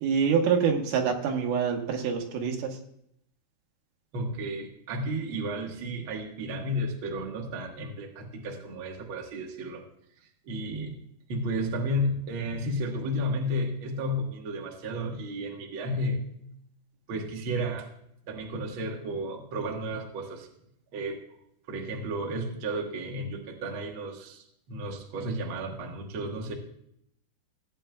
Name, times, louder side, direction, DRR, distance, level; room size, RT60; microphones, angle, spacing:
voice 1, 0.0-2.8, right 6 dB, 85° right, 3 dB, 3.2 m, -26 dB
voice 2, 4.1-9.8 10.4-11.0 11.3-16.2 17.1-17.9 18.3-20.5 20.9-21.2 21.7-26.5, equal, 55° right, 1 dB, 1.5 m, -32 dB
17.0 x 9.1 x 2.3 m, 0.72 s
omnidirectional pair, 4.3 m